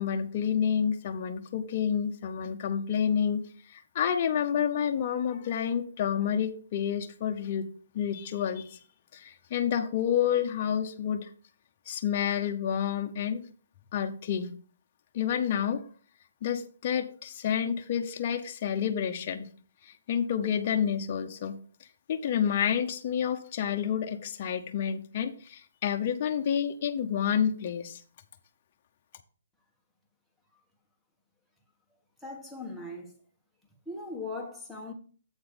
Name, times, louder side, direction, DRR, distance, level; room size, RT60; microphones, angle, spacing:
voice 1, 0.0-7.7 7.9-8.8 9.1-11.3 11.9-13.4 13.9-14.5 15.1-15.8 16.4-19.5 19.8-21.6 22.1-28.0, left 8 dB, 35° left, 0.8 m, -29 dB
voice 2, 32.2-33.2 33.9-34.9, left 2 dB, ahead, 1.3 m, -39 dB
8.0 x 3.9 x 6.7 m
hypercardioid pair, 160°, 0 cm